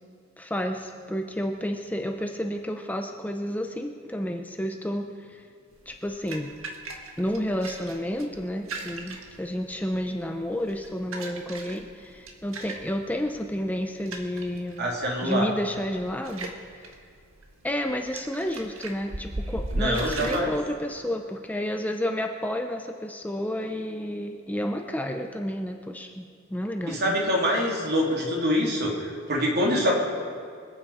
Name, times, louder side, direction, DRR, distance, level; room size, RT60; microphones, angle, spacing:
voice 1, 0.4-5.5 5.9-6.5 7.2-14.8 15.2-16.5 16.8-16.9 17.6-27.2, equal, 10° left, 4 dB, 0.7 m, -31 dB
sound 1, 5.7-20.4, right 2 dB, 80° right, 1.7 m, -39 dB
voice 2, 14.8-15.5 19.7-20.5 26.9-30.0, equal, 55° right, -2 dB, 3.3 m, -25 dB
25.0 x 8.9 x 5.0 m, 2.2 s
head